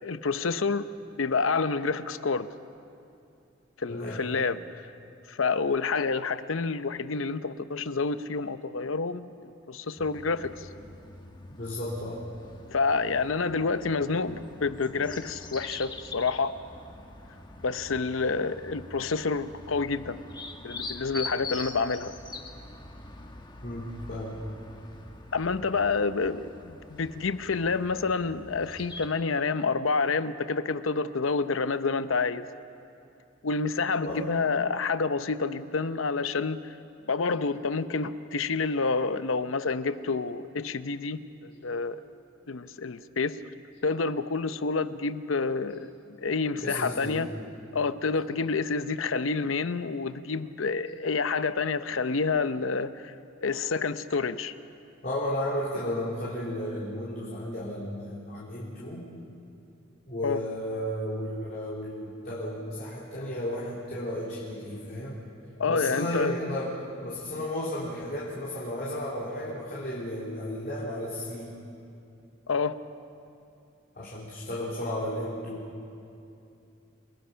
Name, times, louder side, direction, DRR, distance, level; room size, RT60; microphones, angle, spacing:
voice 1, 0.0-2.5 3.8-4.9 5.3-10.7 12.7-16.6 17.6-20.2 20.6-22.1 25.3-32.4 33.4-36.7 37.1-42.0 42.5-43.4 43.8-45.9 46.2-47.3 47.7-53.1 53.4-54.5 60.2-60.4 65.6-66.3 72.5-72.8, left 4 dB, 75° left, 12 dB, 0.8 m, -28 dB
voice 2, 3.9-4.2 11.6-12.2 23.6-24.4 34.0-34.3 46.6-47.3 55.0-59.1 60.1-65.2 65.7-71.6 74.0-75.7, left 1 dB, 45° left, -7 dB, 3.5 m, -33 dB
sound 1, 10.0-29.1, left 2 dB, 25° left, 1.4 m, -44 dB
29.0 x 20.0 x 5.7 m, 2.7 s
head